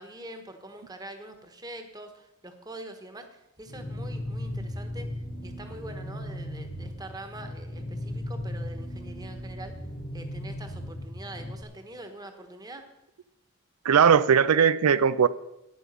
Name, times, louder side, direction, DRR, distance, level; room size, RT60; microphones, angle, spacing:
voice 1, 0.0-5.1 5.4-9.7 10.1-12.9, right 1 dB, 15° right, 6 dB, 1.2 m, -44 dB
sound 1, 3.7-11.6, left 1 dB, 35° left, 1.2 m, -37 dB
voice 2, 13.8-15.3, right 7 dB, 90° right, 15 dB, 0.4 m, -19 dB
10.0 x 9.1 x 6.8 m, 0.88 s
head